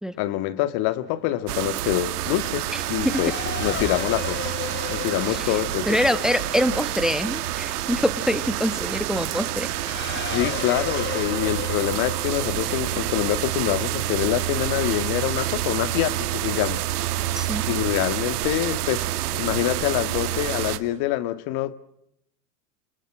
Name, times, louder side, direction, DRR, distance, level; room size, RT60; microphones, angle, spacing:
voice 1, 0.2-3.3 3.6-4.4 4.9-5.9 10.3-16.8 17.7-21.7, left 14 dB, 50° left, 2.0 m, -25 dB
Race car auto racing / Accelerating revving vroom, 0.9-15.0, left 6 dB, 20° left, 3.9 m, -36 dB
sound 1, 1.5-20.8, right 14 dB, 65° right, 2.2 m, -28 dB
voice 2, 2.7-3.2 5.2-5.6 5.9-9.7 17.3-17.6, equal, ahead, 1.4 m, -25 dB
30.0 x 26.0 x 6.2 m
hypercardioid pair, 100°, 49 cm